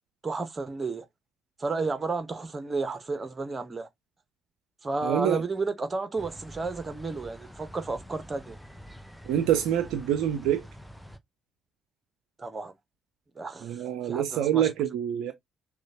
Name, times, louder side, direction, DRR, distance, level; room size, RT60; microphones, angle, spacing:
voice 1, 0.2-1.1 1.6-3.9 4.8-8.6 12.4-12.7 13.4-14.6, right 3 dB, 25° right, 0.9 m, -32 dB
voice 2, 5.0-5.4 9.3-10.7 13.6-15.3, right 10 dB, 60° right, 0.4 m, -26 dB
sound 1, 6.2-11.2, equal, ahead, 0.7 m, -46 dB
6.2 x 2.3 x 2.7 m
figure-of-eight pair, 45°, 0 cm